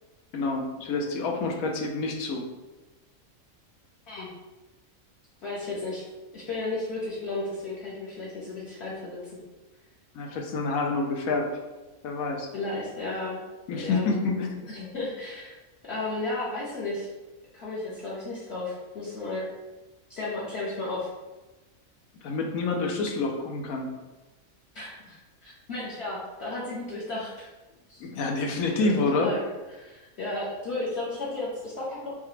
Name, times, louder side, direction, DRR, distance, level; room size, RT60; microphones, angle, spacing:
voice 1, 0.3-2.4 10.1-11.5 12.0-12.5 13.7-14.6 22.2-23.9 28.0-29.3, left 3 dB, 85° left, 2 dB, 1.1 m, -28 dB
voice 2, 5.4-6.0 6.3-9.2 12.5-13.4 13.7-14.1 14.7-15.5 15.9-17.1 17.5-19.5 20.1-21.1 24.7-27.5 27.9-28.0 28.8-29.4 29.7-32.1, left 2 dB, 55° left, -7 dB, 1.0 m, -34 dB
5.6 x 2.3 x 3.1 m, 1.2 s
omnidirectional pair, 1.4 m